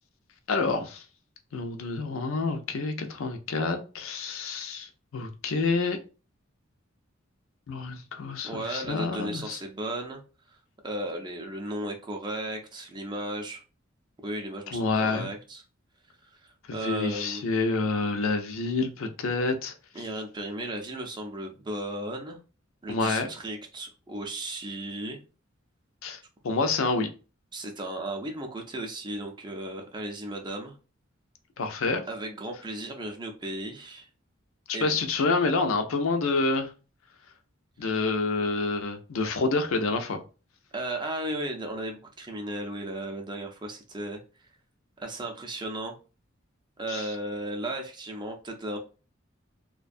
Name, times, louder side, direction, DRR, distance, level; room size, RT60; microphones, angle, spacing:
voice 1, 0.5-1.0 1.5-6.0 7.7-9.6 14.7-15.3 16.8-19.7 22.9-23.3 26.0-26.2 26.4-27.1 31.6-32.0 34.8-36.7 37.8-40.2 46.9-47.1, left 3 dB, 80° left, 6 dB, 0.5 m, -28 dB
voice 2, 8.4-10.2 10.8-13.6 14.2-15.6 16.3-17.4 19.9-22.4 22.8-25.2 27.5-30.7 32.1-34.1 34.7-35.0 40.7-44.2 45.0-46.0 46.8-48.8, right 1 dB, 20° right, 2 dB, 0.5 m, -35 dB
2.5 x 2.2 x 2.5 m, 0.34 s
head